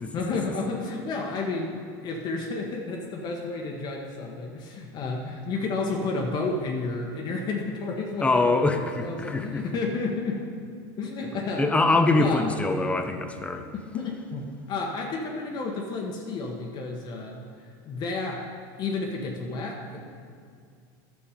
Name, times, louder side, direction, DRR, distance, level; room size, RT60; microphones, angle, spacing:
voice 1, 0.1-10.5 11.0-11.7 11.9-12.4 13.7-18.4 18.8-20.0, left 3 dB, 40° left, 0 dB, 1.2 m, -31 dB
voice 2, 8.2-9.6 11.3-13.7, left 2 dB, 10° left, 6 dB, 0.7 m, -24 dB
11.5 x 7.0 x 5.1 m, 2.2 s
supercardioid pair, 125°, 11 cm